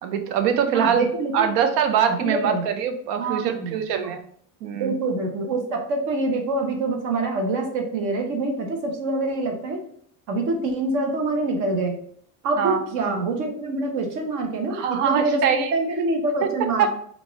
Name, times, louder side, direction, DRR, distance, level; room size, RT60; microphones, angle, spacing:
voice 1, 0.0-1.1 1.3-4.2 4.6-4.9 12.6-12.8 13.1-13.2 14.7-15.7 16.4-16.5 16.8-16.9, right 8 dB, 80° right, 7 dB, 0.7 m, -23 dB
voice 2, 0.7-1.5 2.1-2.7 3.2-4.1 4.8-9.8 10.3-12.0 12.4-16.9, right 2 dB, 55° right, 3 dB, 0.9 m, -25 dB
4.0 x 2.5 x 3.5 m, 0.62 s
cardioid pair, 175°, 37 cm